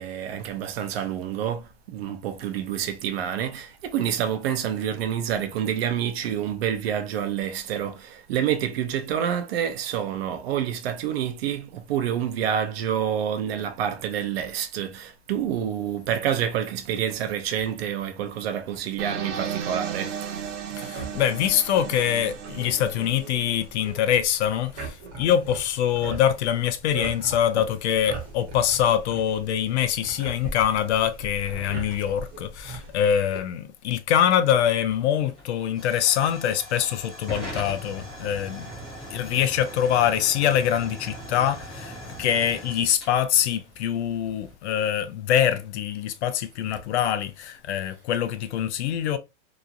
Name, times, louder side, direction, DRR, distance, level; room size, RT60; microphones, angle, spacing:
voice 1, 0.0-20.9 27.6-27.7 47.0-47.1, right 9 dB, 55° right, 0.6 m, -28 dB
sound 1, 19.0-23.9, right 8 dB, 85° right, 0.9 m, -35 dB
voice 2, 20.8-38.7 39.1-49.2, left 10 dB, 65° left, 0.5 m, -24 dB
sound 2, 20.9-33.4, right 2 dB, 35° right, 0.9 m, -40 dB
Hiss / Fire / Tick, 34.2-44.5, equal, ahead, 0.3 m, -40 dB
3.0 x 2.4 x 2.3 m
supercardioid pair, 170°, 36 cm